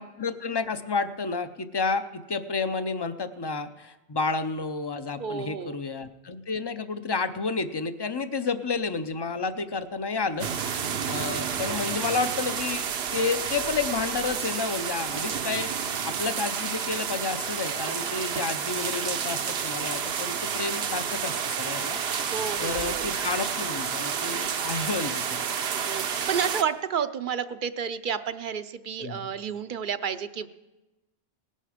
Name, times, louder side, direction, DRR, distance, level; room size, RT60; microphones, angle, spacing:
voice 1, 0.0-10.5 11.1-12.8 13.1-22.0 22.6-25.5 29.0-29.3, left 4 dB, 30° left, 11 dB, 0.5 m, -30 dB
voice 2, 5.2-5.7 22.3-23.1 25.9-30.5, right 7 dB, 60° right, 11 dB, 0.7 m, -31 dB
sound 1, 10.4-26.6, right 7 dB, 75° right, 1.0 m, -30 dB
18.5 x 11.0 x 5.0 m, 1.1 s
omnidirectional pair, 1.1 m